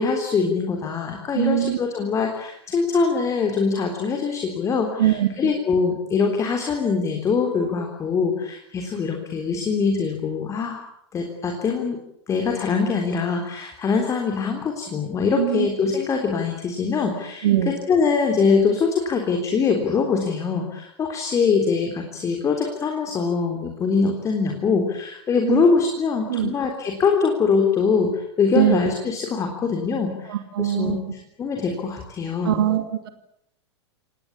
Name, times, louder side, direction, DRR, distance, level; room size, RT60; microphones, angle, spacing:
voice 1, 0.0-10.8 11.1-12.0 12.3-17.5 17.9-31.0 31.4-32.7, left 5 dB, 20° left, 3 dB, 3.7 m, -23 dB
voice 2, 1.3-1.8 5.0-5.5 15.4-15.7 17.4-17.7 25.4-25.6 26.3-26.5 28.5-28.8 30.3-31.0 32.4-33.1, right 12 dB, 55° right, 9 dB, 2.6 m, -22 dB
28.0 x 18.5 x 8.6 m, 0.75 s
figure-of-eight pair, 95°, 14 cm